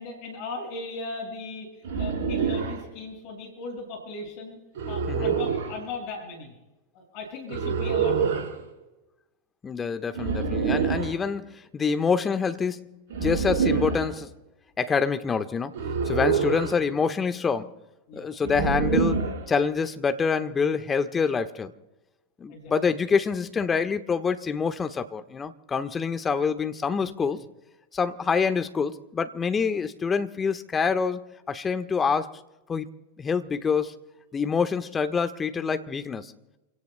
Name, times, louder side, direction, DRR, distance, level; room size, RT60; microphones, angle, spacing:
voice 1, 0.0-4.6 4.9-6.5 6.9-8.5 16.3-16.6 18.1-18.3 22.5-22.7 27.0-27.3, left 3 dB, 50° left, 6.3 m, -38 dB
sound 1, 1.8-2.8 4.8-5.7 7.5-8.5 10.1-11.2 13.1-14.1 15.7-16.8 18.4-19.4, right 6 dB, 60° right, 4.2 m, -26 dB
voice 2, 9.6-14.3 14.8-15.7 16.1-17.7 18.1-21.7 22.4-27.4 27.9-31.2 31.5-32.3 32.7-32.9 33.2-34.0 34.3-36.3, left 5 dB, 20° left, 1.3 m, -26 dB
29.5 x 17.5 x 2.2 m
hypercardioid pair, 95°, 0 cm